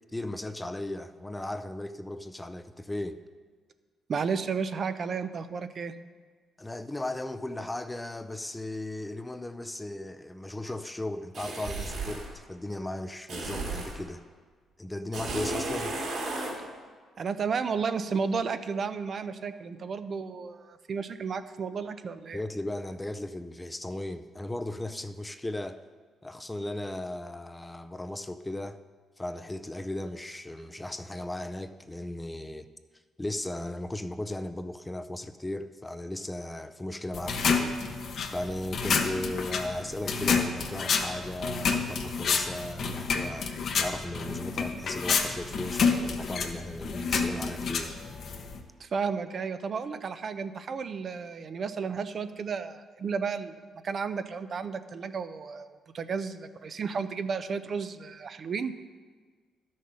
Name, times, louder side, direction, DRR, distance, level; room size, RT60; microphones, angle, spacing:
voice 1, 0.1-3.2 6.6-14.2 14.8-16.0 22.3-25.8 26.2-28.8 29.2-32.7 33.2-37.8 38.3-43.5 43.8-47.9, left 1 dB, 15° left, 10 dB, 0.5 m, -36 dB
voice 2, 4.1-5.9 17.2-22.4 48.8-53.5 53.8-58.7, right 5 dB, 50° right, 11 dB, 0.5 m, -33 dB
sound 1, 11.3-12.3 13.3-14.0 15.1-16.6, right 2 dB, 75° right, 3.2 m, -34 dB
sound 2, 37.1-48.6, left 5 dB, 60° left, 1.0 m, -29 dB
12.0 x 6.5 x 5.5 m, 1.5 s
cardioid pair, 90°, 0 cm